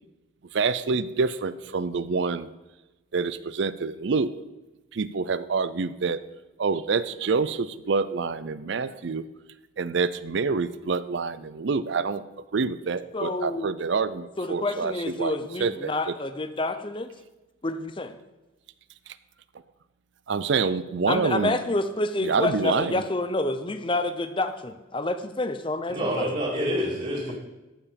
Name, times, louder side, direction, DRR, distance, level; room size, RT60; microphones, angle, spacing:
voice 1, 0.5-2.5 3.1-4.3 4.9-6.2 6.6-9.2 9.8-12.2 12.5-15.3 15.6-16.2 20.3-21.6 22.2-23.0, right 4 dB, 60° right, 15 dB, 0.5 m, -27 dB
voice 2, 13.1-13.7 14.4-17.1 17.6-18.1 21.1-26.3, left 2 dB, 25° left, 9 dB, 0.6 m, -28 dB
voice 3, 25.9-27.3, equal, 40° right, -8 dB, 2.8 m, -27 dB
14.0 x 4.8 x 5.2 m, 1.1 s
head